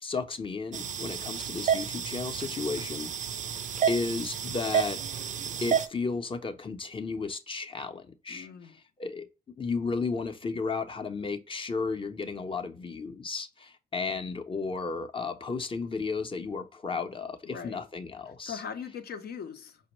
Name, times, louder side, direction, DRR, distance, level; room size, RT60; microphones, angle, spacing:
voice 1, 0.0-3.1 3.9-5.0 5.6-9.3 9.6-18.6, left 4 dB, 30° left, 0.6 m, -33 dB
sound 1, 0.7-5.9, right 8 dB, 45° right, 0.4 m, -31 dB
voice 2, 8.3-8.7 17.5-17.8 18.5-19.8, left 7 dB, 65° left, 0.6 m, -40 dB
5.1 x 2.1 x 3.0 m
cardioid pair, 75°, 17 cm